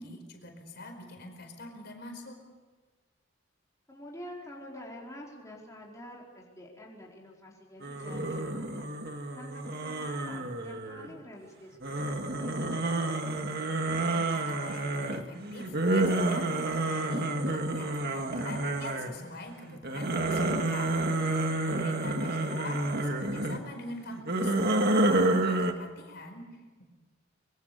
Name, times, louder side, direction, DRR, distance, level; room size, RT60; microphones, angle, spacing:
voice 1, 0.0-2.4 14.1-21.0 21.7-26.8, left 2 dB, 55° left, 4 dB, 4.8 m, -44 dB
voice 2, 3.9-8.9 9.3-12.9 22.0-22.7, left 1 dB, 15° left, -3 dB, 4.4 m, -48 dB
sound 1, 7.8-11.2 11.8-19.3 19.7-23.6 24.1-25.7, right 2 dB, 50° right, 2.0 m, -29 dB
25.5 x 24.0 x 6.8 m, 1.3 s
head